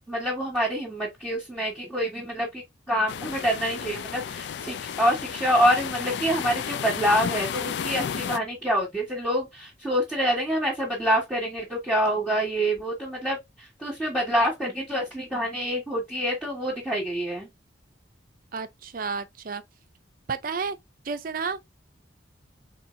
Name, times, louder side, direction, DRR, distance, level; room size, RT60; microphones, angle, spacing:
voice 1, 0.1-17.5, equal, ahead, 1.4 m, -26 dB
sound 1, 3.1-8.4, left 8 dB, 65° left, 0.3 m, -33 dB
voice 2, 18.5-19.6 20.3-20.8 21.0-21.7, right 5 dB, 50° right, 0.5 m, -31 dB
4.4 x 3.7 x 2.6 m
head